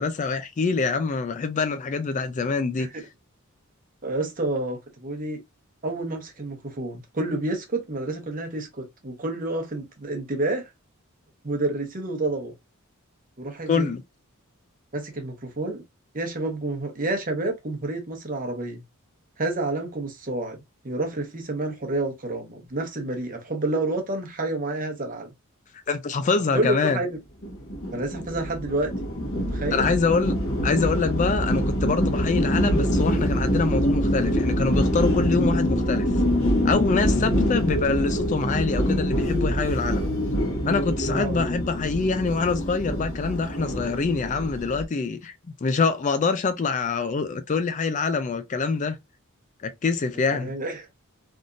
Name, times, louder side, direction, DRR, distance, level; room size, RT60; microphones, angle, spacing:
voice 1, 0.0-2.9 13.7-14.0 25.9-27.0 29.7-30.4 30.6-36.1 36.6-40.1 40.6-45.3 45.6-49.0 49.6-50.5, left 4 dB, 35° left, 0.3 m, -25 dB
voice 2, 4.0-5.4 5.8-10.7 11.4-12.5 13.4-13.9 14.9-15.8 16.1-18.8 19.4-20.6 20.8-25.3 26.5-27.2 27.9-28.9 29.3-29.9 41.1-41.4 50.3-50.9, right 2 dB, 40° right, 1.0 m, -29 dB
sound 1, 27.4-44.8, equal, 65° left, 1.2 m, -25 dB
3.5 x 2.6 x 2.5 m
head